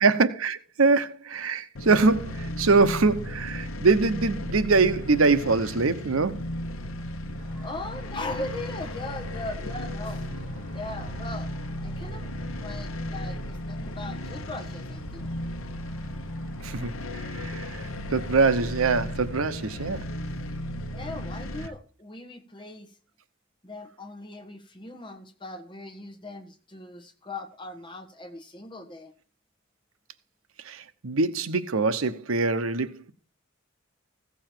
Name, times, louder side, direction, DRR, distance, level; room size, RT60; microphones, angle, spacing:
voice 1, 0.0-6.4 16.6-16.9 17.2-20.1 30.6-33.1, right 4 dB, 80° right, 0.9 m, -23 dB
sound 1, 1.8-21.7, left 1 dB, 80° left, 1.1 m, -35 dB
sound 2, 7.4-18.7, equal, 10° right, 7.0 m, -50 dB
voice 2, 7.6-10.3 10.7-11.5 11.8-12.3 12.6-15.3 20.9-22.9 23.6-29.1, left 2 dB, 25° left, 1.5 m, -39 dB
15.5 x 7.2 x 4.4 m
head